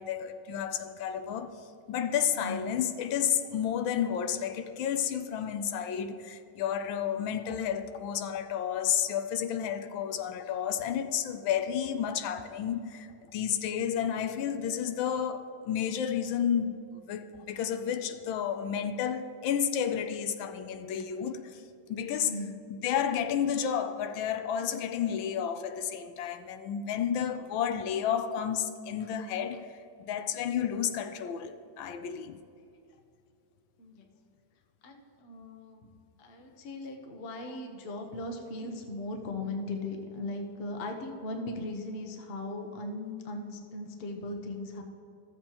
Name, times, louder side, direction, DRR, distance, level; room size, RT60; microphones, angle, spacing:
voice 1, 0.0-1.5 1.9-16.8 17.1-21.6 21.9-22.4 22.8-29.7 30.0-32.4, left 8 dB, 80° left, 1.3 m, -31 dB
voice 2, 2.4-2.7 22.2-22.6 33.8-34.1 34.8-35.9 36.2-44.8, left 2 dB, 45° left, 0.8 m, -38 dB
14.0 x 7.5 x 2.9 m
omnidirectional pair, 2.2 m